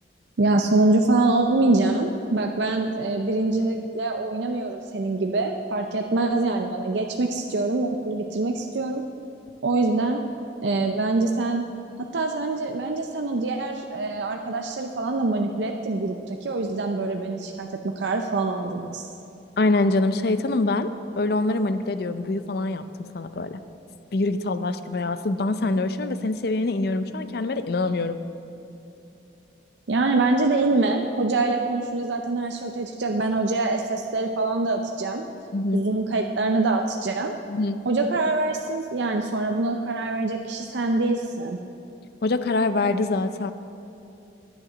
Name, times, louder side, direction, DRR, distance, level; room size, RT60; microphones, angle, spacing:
voice 1, 0.4-9.0 9.6-10.2 10.6-11.7 12.1-19.1 29.9-35.3 35.7-37.3 37.9-41.6, right 2 dB, 75° right, 3 dB, 0.6 m, -24 dB
voice 2, 19.6-23.6 24.1-28.2 35.5-35.9 37.5-37.8 42.2-43.5, left 2 dB, 60° left, 11 dB, 0.5 m, -25 dB
10.5 x 8.9 x 6.2 m, 2.8 s
head